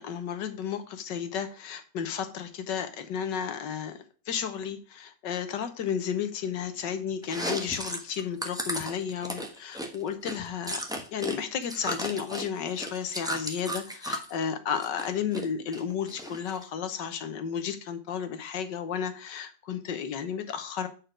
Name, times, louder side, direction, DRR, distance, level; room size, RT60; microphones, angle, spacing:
voice 1, 0.0-10.8 11.1-20.9, left 7 dB, 75° left, 9 dB, 1.6 m, -33 dB
Chewing mastication, 7.2-11.4 11.6-14.3 14.7-15.5 15.7-16.6, equal, 5° right, 0.7 m, -34 dB
8.4 x 4.5 x 5.0 m, 0.38 s
omnidirectional pair, 2.0 m